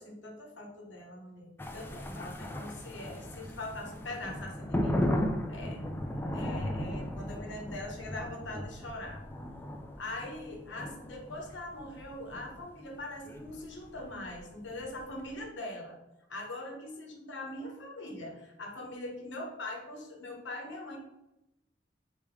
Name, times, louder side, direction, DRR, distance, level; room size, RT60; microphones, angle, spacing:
voice 1, 0.0-5.0 5.5-5.8 6.1-9.2 10.0-16.0 16.3-21.0, left 1 dB, 70° left, 1 dB, 0.9 m, -42 dB
sound 1, 1.6-15.3, left 1 dB, 10° left, 0.3 m, -36 dB
3.4 x 2.9 x 4.6 m, 0.90 s
head